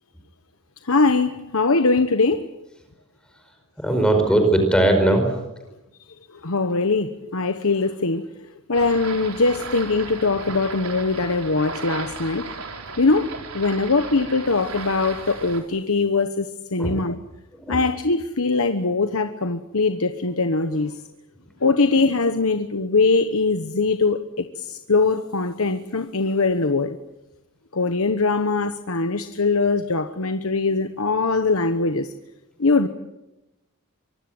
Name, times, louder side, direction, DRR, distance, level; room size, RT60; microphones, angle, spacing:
voice 1, 0.8-2.4 6.4-8.2 8.7-12.5 13.0-17.2 17.7-21.0 21.6-27.0 27.7-32.1 32.6-32.9, left 3 dB, 75° left, 9 dB, 1.1 m, -21 dB
voice 2, 3.8-5.3 16.8-17.1 17.5-17.8, right 1 dB, 5° left, 5 dB, 4.9 m, -19 dB
sound 1, 8.7-15.6, right 4 dB, 85° right, 4.1 m, -36 dB
24.5 x 23.5 x 7.9 m, 0.97 s
head